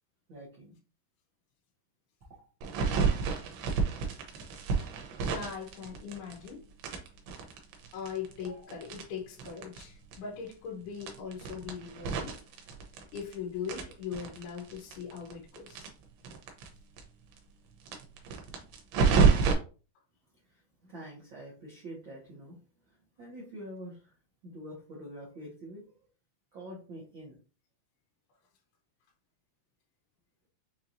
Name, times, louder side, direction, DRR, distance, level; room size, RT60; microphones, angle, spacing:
voice 1, 0.3-0.7 20.4-24.1 24.4-25.8 26.5-27.4, equal, 65° right, 1.1 m, -46 dB
sound 1, 2.6-6.5 6.8-9.8 10.1-10.2 10.5-10.6 11.0-13.3 13.6-16.7 17.0-17.1 17.3-17.4 17.8-19.5, right 5 dB, 85° right, 2.9 m, -29 dB
voice 2, 5.2-6.7 7.9-12.5 13.1-15.9, left 6 dB, 85° left, 3.0 m, -40 dB
6.7 x 3.0 x 2.6 m
omnidirectional pair, 4.4 m